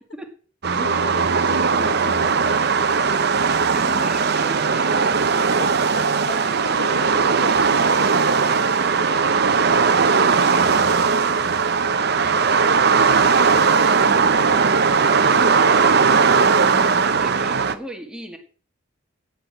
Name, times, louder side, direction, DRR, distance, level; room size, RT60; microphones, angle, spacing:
sound 1, 0.6-17.7, right 5 dB, 55° right, 0.7 m, -18 dB
voice 1, 0.7-2.5 5.3-8.1 16.6-17.2, left 1 dB, 60° left, 6 dB, 1.5 m, -36 dB
voice 2, 1.6-2.0 2.8-3.1 3.5-5.4 17.0-18.4, equal, 5° right, 3 dB, 1.7 m, -38 dB
9.3 x 8.6 x 5.9 m, 0.41 s
head